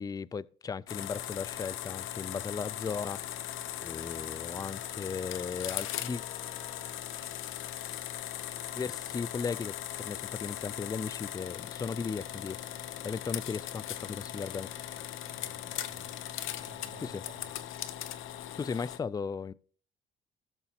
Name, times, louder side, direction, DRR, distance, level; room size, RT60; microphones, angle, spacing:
voice 1, 0.0-3.5 3.8-6.2 8.7-14.7 17.0-17.2 18.6-19.5, left 5 dB, 20° left, 0.3 m, -37 dB
sound 1, 0.9-19.0, left 11 dB, 85° left, 0.7 m, -39 dB
sound 2, 1.5-6.9, left 8 dB, 35° left, 3.1 m, -57 dB
voice 2, 15.2-16.2 16.6-17.5, right 6 dB, 65° right, 2.7 m, -55 dB
17.0 x 6.8 x 2.9 m
cardioid pair, 90°, 20 cm